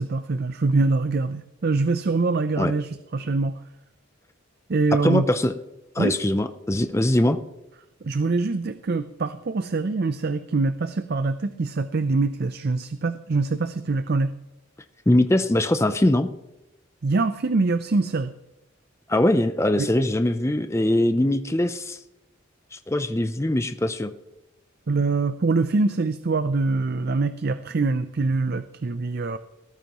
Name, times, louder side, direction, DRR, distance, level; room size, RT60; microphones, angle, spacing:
voice 1, 0.0-3.6 4.7-5.3 6.0-6.2 8.0-14.3 17.0-18.3 19.8-19.9 24.9-29.4, right 3 dB, 50° right, 12 dB, 0.5 m, -24 dB
voice 2, 5.0-5.5 5.9-7.4 15.1-16.3 19.1-22.0 22.7-24.1, left 1 dB, 15° left, 9 dB, 0.5 m, -22 dB
18.0 x 14.0 x 3.0 m, 0.94 s
head